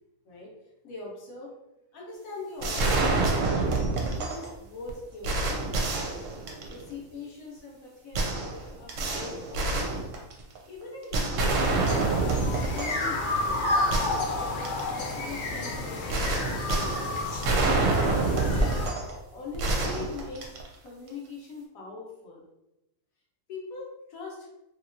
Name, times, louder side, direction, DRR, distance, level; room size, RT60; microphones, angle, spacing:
voice 1, 0.8-1.5 1.9-3.1 3.5-5.6 6.7-9.9 10.5-12.3 12.7-14.0 14.4-17.2 18.0-18.8 19.3-20.5 20.8-22.4 23.5-24.5, left 3 dB, 75° left, -3 dB, 1.2 m, -42 dB
sound 1, 2.6-4.5 4.9-5.0 5.2-6.9 8.1-10.6 11.1-13.1 13.5-13.6 13.9-14.9 16.1-19.2 19.5-20.9, right 3 dB, 70° right, 0.9 m, -27 dB
sound 2, 11.5-18.9, left 2 dB, 55° left, 0.5 m, -30 dB
2.9 x 2.8 x 2.5 m, 0.92 s
omnidirectional pair, 1.5 m